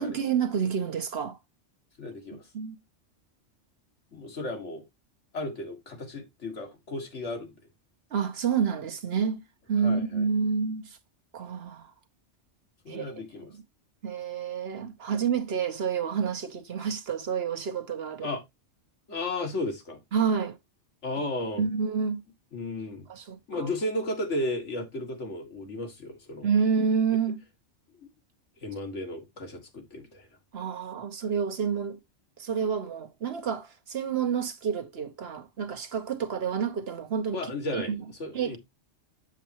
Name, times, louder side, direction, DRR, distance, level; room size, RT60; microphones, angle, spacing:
voice 1, 0.0-1.4 2.5-2.8 8.1-9.4 9.7-11.0 11.3-11.9 12.9-13.2 13.5-13.6 14.0-18.3 20.1-20.6 21.6-22.2 23.1-23.7 26.4-27.4 30.5-32.0 32.4-37.4 37.7-38.0 38.3-38.6, right 6 dB, 60° right, 1.1 m, -29 dB
voice 2, 2.0-2.4 4.1-4.8 5.3-7.5 9.8-10.2 12.8-13.5 18.2-18.4 19.1-20.0 21.0-21.6 22.5-23.1 23.5-26.5 28.0-28.1 28.6-30.3 37.3-37.9 38.2-38.6, left 1 dB, 70° left, 2.1 m, -34 dB
7.3 x 7.2 x 2.9 m
omnidirectional pair, 1.3 m